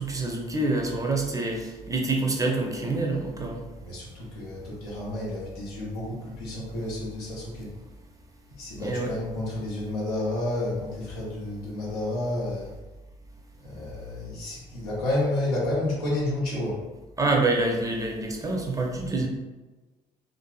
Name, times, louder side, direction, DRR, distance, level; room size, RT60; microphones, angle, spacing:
voice 1, 0.0-3.6 8.8-9.1 17.2-19.3, right 2 dB, 15° right, 0 dB, 0.6 m, -26 dB
voice 2, 3.8-7.7 8.6-12.7 13.6-16.8, left 1 dB, 75° left, -5 dB, 0.7 m, -30 dB
2.6 x 2.4 x 2.3 m, 1.2 s
figure-of-eight pair, 45°, 20 cm